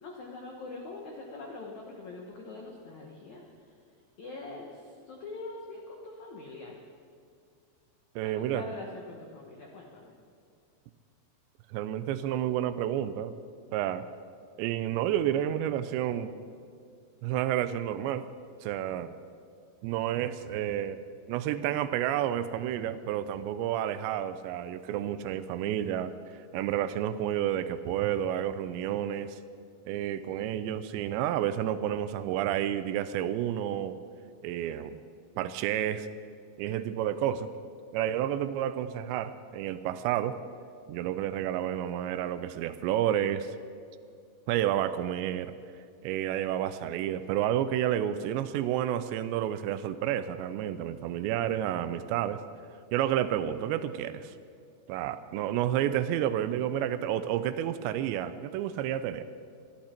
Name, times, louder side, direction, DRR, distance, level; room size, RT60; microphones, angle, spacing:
voice 1, 0.0-3.4 4.2-6.8 8.2-10.1, left 3 dB, 85° left, 0 dB, 1.6 m, -43 dB
voice 2, 8.2-8.6 11.7-13.3 13.7-14.1 14.6-16.3 17.2-18.3 18.6-19.2 19.8-21.0 21.3-29.4 29.9-34.0 34.4-35.0 35.4-36.1 36.6-37.5 37.9-40.4 40.9-43.6 44.5-45.5 46.0-52.4 52.9-54.3 54.9-59.2, right 11 dB, 85° right, 12 dB, 2.6 m, -30 dB
23.5 x 12.0 x 4.4 m, 2.2 s
omnidirectional pair, 5.4 m